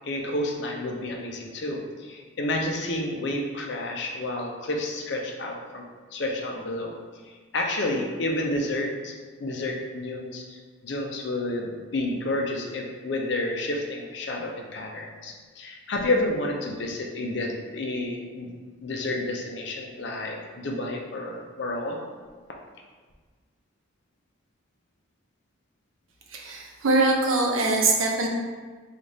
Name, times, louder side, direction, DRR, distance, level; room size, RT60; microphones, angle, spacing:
voice 1, 0.0-5.8 6.1-6.9 7.5-9.1 9.4-18.5 18.8-22.0, left 1 dB, 55° left, 1 dB, 0.5 m, -30 dB
voice 2, 26.3-28.3, right 2 dB, 80° right, 0 dB, 0.6 m, -23 dB
3.2 x 2.4 x 3.9 m, 1.4 s
head